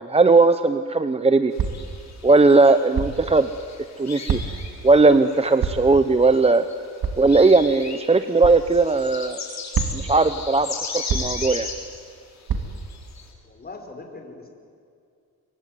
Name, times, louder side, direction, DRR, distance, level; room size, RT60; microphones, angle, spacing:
voice 1, 0.0-1.5 2.2-3.5 4.0-4.4 4.8-6.7 7.2-9.4 9.9-10.7 10.9-11.7, right 3 dB, 15° right, 11 dB, 0.8 m, -18 dB
sound 1, 1.5-5.9 6.3-12.0 12.5-13.2, left 4 dB, 50° left, 7.6 m, -36 dB
sound 2, 1.6-1.9 2.9-3.3 4.3-4.7 5.6-6.0 7.0-7.3 8.4-8.6 9.7-10.2 11.1-11.5 12.5-12.9, right 6 dB, 65° right, 2.5 m, -26 dB
voice 2, 13.4-14.5, left 3 dB, 25° left, 3 dB, 4.6 m, -40 dB
25.0 x 24.0 x 9.5 m, 2.3 s
cardioid pair, 115°, 35 cm